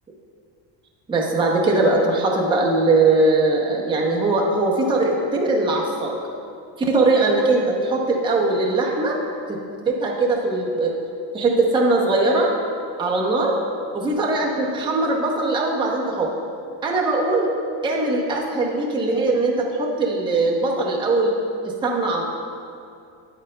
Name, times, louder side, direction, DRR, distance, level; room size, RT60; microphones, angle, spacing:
voice 1, 1.1-6.2 6.8-9.2 9.5-9.6 9.9-11.0 11.3-12.5 13.0-13.5 13.9-16.3 16.8-17.5 17.8-21.3 21.6-22.2, right 2 dB, 10° right, -2 dB, 0.6 m, -20 dB
9.1 x 8.9 x 2.2 m, 2.4 s
cardioid pair, 150°, 48 cm